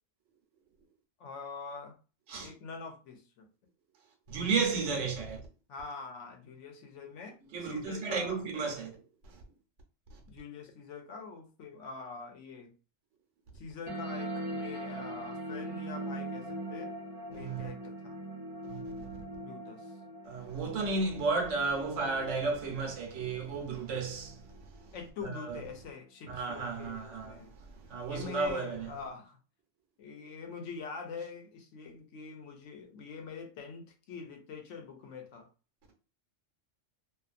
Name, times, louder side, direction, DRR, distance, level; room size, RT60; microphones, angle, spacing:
voice 1, 1.2-1.9 2.4-3.5 5.7-8.5 10.3-12.7 13.5-16.9 17.3-18.2 19.2-20.0 24.9-27.5 28.1-29.4 30.0-35.5, left 5 dB, 75° left, 0.9 m, -45 dB
voice 2, 4.3-5.4 7.5-9.0 17.3-17.7 18.6-19.2 20.2-24.4 25.2-25.6 26.3-27.4 27.9-28.9, right 4 dB, 75° right, 1.1 m, -33 dB
sound 1, 13.9-24.8, right 1 dB, 40° right, 0.8 m, -41 dB
2.6 x 2.4 x 2.4 m
omnidirectional pair, 1.3 m